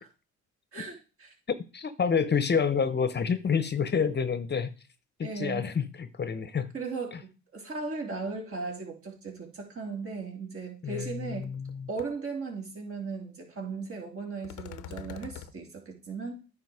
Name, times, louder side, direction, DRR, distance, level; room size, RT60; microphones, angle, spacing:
voice 1, 0.7-1.3 5.2-5.7 6.7-11.5 11.9-16.4, right 4 dB, 45° right, 3.3 m, -37 dB
voice 2, 1.7-4.7 5.2-6.7 10.8-11.9, left 6 dB, 35° left, 0.8 m, -28 dB
sound 1, 11.0-11.1 11.4-11.7 12.0-12.1 14.4-15.5, left 11 dB, 90° left, 0.7 m, -43 dB
9.5 x 5.4 x 4.8 m
cardioid pair, 90°, 30 cm